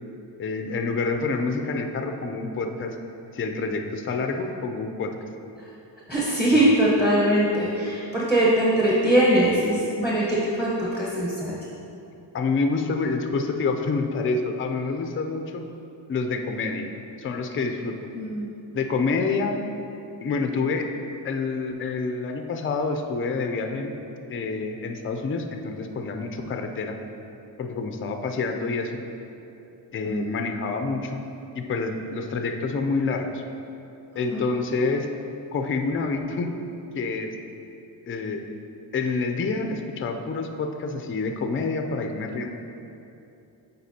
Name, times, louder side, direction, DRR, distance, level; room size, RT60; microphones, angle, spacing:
voice 1, 0.4-3.0 3.3-5.1 6.5-6.8 12.3-15.7 16.1-16.9 17.2-17.9 18.7-19.6 20.2-20.9 21.2-23.9 24.3-27.0 27.6-29.0 29.9-31.2 31.5-33.4 34.2-35.1 35.5-36.6 36.9-37.3 38.1-38.4 38.9-42.5, left 4 dB, 30° left, 5 dB, 0.4 m, -27 dB
voice 2, 6.1-11.6 18.1-18.5 30.0-30.3 34.3-34.4, right 1 dB, 5° right, -7 dB, 1.0 m, -22 dB
9.3 x 4.1 x 2.8 m, 2.8 s
cardioid pair, 90°, 44 cm